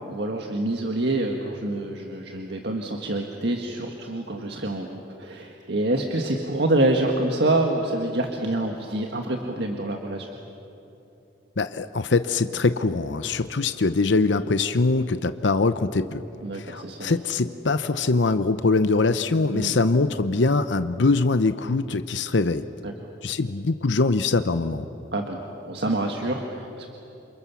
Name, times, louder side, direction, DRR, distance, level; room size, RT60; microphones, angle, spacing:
voice 1, 0.1-10.3 16.4-17.2 19.5-19.7 22.8-22.9 25.1-25.4 25.6-26.9, right 2 dB, 65° right, 2 dB, 1.8 m, -26 dB
voice 2, 11.6-16.2 16.5-22.7 23.2-24.9, left 3 dB, 75° left, 11 dB, 0.8 m, -23 dB
28.5 x 28.0 x 7.1 m, 3.0 s
head